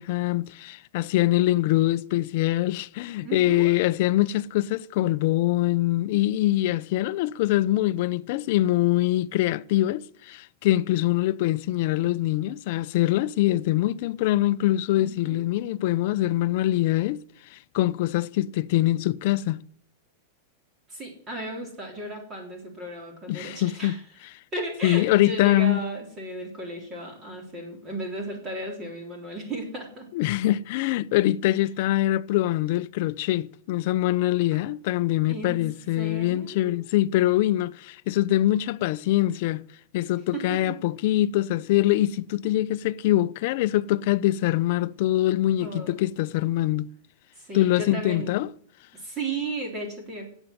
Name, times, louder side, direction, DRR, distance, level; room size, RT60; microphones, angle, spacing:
voice 1, 0.0-17.2 17.5-19.6 23.3-24.0 24.8-25.8 30.1-39.6 39.9-46.9 47.5-48.5, left 15 dB, 50° left, 0.5 m, -24 dB
voice 2, 3.2-3.7 14.9-15.4 20.9-24.0 24.5-30.1 34.5-34.6 35.3-35.7 36.0-36.7 40.3-40.7 45.6-46.0 47.4-48.4 48.9-50.3, right 2 dB, 20° right, 3.5 m, -35 dB
11.0 x 8.1 x 9.3 m
supercardioid pair, 160°, 0 cm